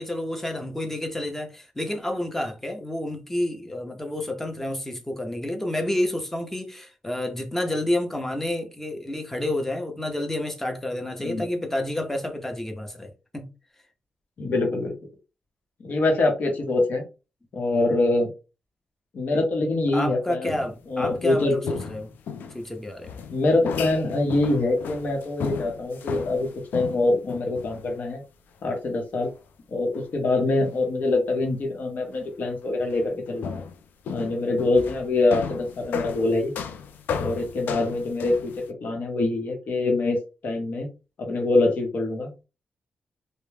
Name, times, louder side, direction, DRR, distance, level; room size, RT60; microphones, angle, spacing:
voice 1, 0.0-13.5 19.9-22.1 22.5-23.2, left 1 dB, 10° left, 0.7 m, -29 dB
voice 2, 14.4-14.9 15.8-17.0 17.5-18.3 19.1-20.5 20.9-21.8 23.3-26.5 26.7-28.2 28.6-29.3 29.7-33.6 34.1-36.5 37.1-38.5 38.8-40.2 40.4-40.9 41.2-42.4, left 2 dB, 65° left, 0.9 m, -24 dB
sound 1, 20.5-21.4 21.7-22.6 23.0-28.0 28.6-28.7 29.9-30.0 31.4-31.5 32.8-33.0 33.4-38.7, left 6 dB, 80° left, 0.3 m, -34 dB
2.2 x 2.1 x 3.2 m
cardioid pair, 80°, 3 cm